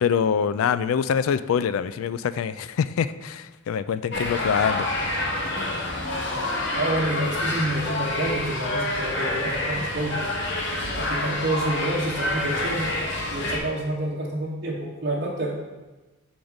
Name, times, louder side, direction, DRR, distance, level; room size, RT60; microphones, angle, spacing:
voice 1, 0.0-4.9, left 7 dB, 85° left, 14 dB, 0.3 m, -24 dB
sound 1, 4.1-13.6, left 2 dB, 60° left, 0.9 m, -27 dB
voice 2, 6.7-10.3 11.0-13.0 13.3-15.5, right 1 dB, 55° right, -5 dB, 0.9 m, -28 dB
5.9 x 3.9 x 5.0 m, 1.2 s
head